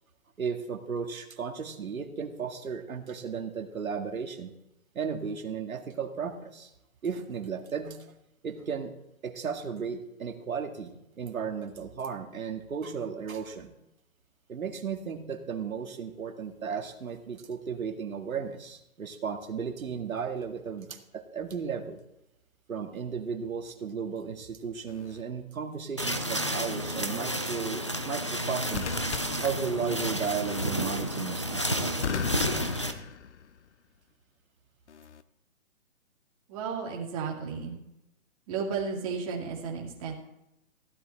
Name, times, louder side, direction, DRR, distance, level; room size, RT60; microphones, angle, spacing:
voice 1, 0.4-4.5 4.9-6.7 7.0-8.0 8.4-8.9 9.2-13.7 14.5-22.0 22.7-28.9 29.4-31.7, right 6 dB, 75° right, 4 dB, 2.1 m, -35 dB
sound 1, 24.9-25.2 28.7-30.2 32.0-33.7 34.9-35.2, left 7 dB, 55° left, 0.8 m, -37 dB
sound 2, 26.0-32.9, equal, 25° left, 0.4 m, -31 dB
voice 2, 36.5-37.8 38.5-40.1, right 5 dB, 25° right, -1 dB, 2.2 m, -33 dB
15.5 x 11.0 x 4.3 m, 0.86 s
hypercardioid pair, 165°, 42 cm